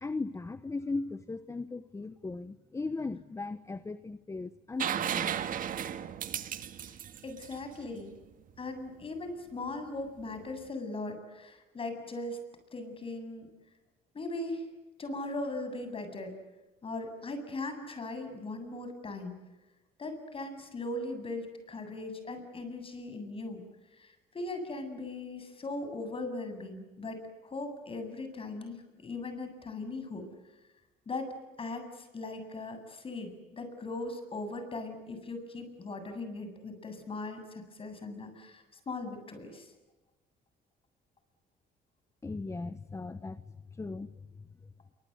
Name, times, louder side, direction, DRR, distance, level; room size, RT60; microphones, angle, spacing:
voice 1, 0.0-5.4 42.2-43.4 43.7-44.1 44.4-44.5, left 3 dB, 15° left, 13 dB, 1.0 m, -37 dB
sound 1, 4.8-8.5 10.4-10.5, right 9 dB, 55° right, 1.8 m, -35 dB
voice 2, 7.2-8.1 8.6-12.4 12.7-13.5 14.1-14.6 15.0-16.3 16.8-19.4 20.0-23.6 24.0-30.3 31.1-39.7, left 2 dB, 30° left, 8 dB, 7.9 m, -39 dB
28.0 x 25.0 x 8.1 m, 1.1 s
cardioid pair, 110°, 17 cm